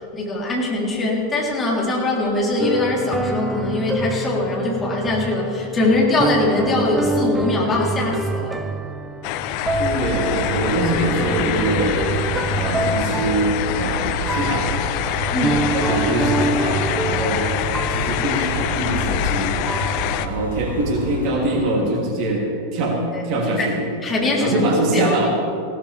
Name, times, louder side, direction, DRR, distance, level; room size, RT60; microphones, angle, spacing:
voice 1, 0.0-8.6 15.3-15.7 23.1-23.3 23.6-23.7 24.0-25.3, left 2 dB, 20° left, -3 dB, 3.6 m, -22 dB
sound 1, 2.6-21.2, right 3 dB, 10° right, 0.7 m, -27 dB
sound 2, 9.2-20.3, left 13 dB, 45° left, 0.7 m, -26 dB
sound 3, 9.5-21.3, right 1 dB, 85° left, 1.9 m, -30 dB
voice 2, 9.8-12.0 12.5-14.7 15.7-17.4 17.9-19.6 20.2-22.4 22.7-23.0 23.2-23.8 24.4-25.3, right 1 dB, 40° right, 0 dB, 2.9 m, -23 dB
20.0 x 17.0 x 3.5 m, 2.5 s
figure-of-eight pair, 90°, 0 cm